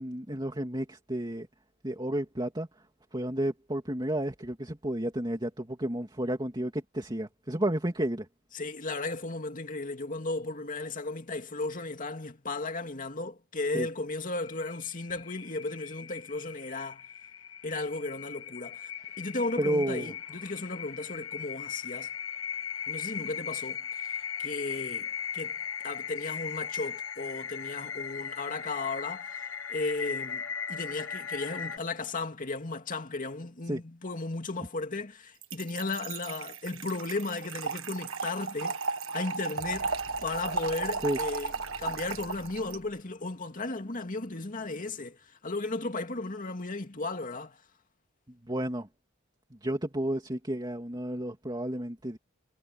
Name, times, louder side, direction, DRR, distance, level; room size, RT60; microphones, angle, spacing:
voice 1, 0.0-1.5 1.8-2.7 3.1-8.3 13.7-13.9 19.6-20.1 33.7-33.8 41.0-41.2 48.4-48.9 49.6-52.2, right 1 dB, 20° right, 2.8 m, -31 dB
voice 2, 8.5-17.1 17.6-18.9 19.2-22.1 22.9-25.6 25.8-39.9 40.2-41.5 41.8-47.6, left 3 dB, 40° left, 2.4 m, -35 dB
sound 1, 14.4-31.8, left 7 dB, 75° left, 1.7 m, -38 dB
Trickle dribble / Fill (with liquid), 35.4-42.8, right 4 dB, 80° right, 1.5 m, -35 dB
sound 2, 39.4-45.3, equal, 20° left, 7.8 m, -53 dB
head